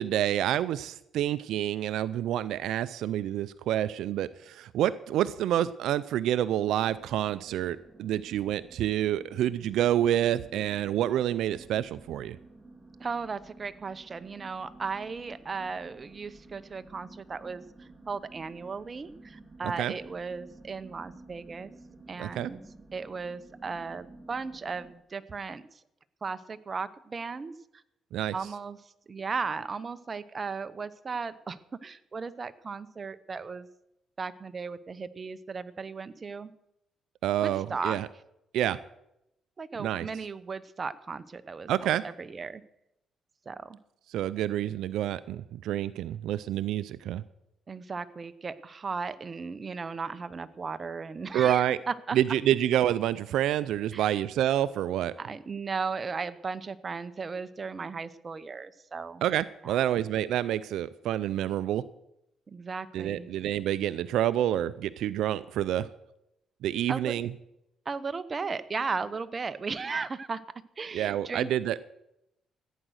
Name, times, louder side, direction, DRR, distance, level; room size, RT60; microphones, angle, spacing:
voice 1, 0.0-12.4 19.8-19.9 22.2-22.5 28.1-28.3 37.2-38.1 38.5-38.8 39.8-40.1 41.7-42.0 44.1-47.2 51.3-51.8 52.1-55.1 59.2-61.8 62.9-65.9 66.6-67.3 70.9-71.8, right 11 dB, 85° right, 16 dB, 0.4 m, -28 dB
sound 1, 6.6-24.9, right 2 dB, 15° right, 2.4 m, -52 dB
voice 2, 13.0-21.7 22.1-22.6 22.9-25.6 26.2-27.5 28.3-28.8 29.1-33.7 34.2-36.5 37.4-38.0 39.6-42.6 43.5-43.8 47.7-52.2 53.9-54.2 55.2-59.2 59.6-59.8 62.5-63.3 66.9-67.1 67.9-70.4 70.8-71.5, right 4 dB, 35° right, 13 dB, 0.8 m, -36 dB
15.0 x 9.1 x 6.4 m, 0.84 s
cardioid pair, 90°, 0 cm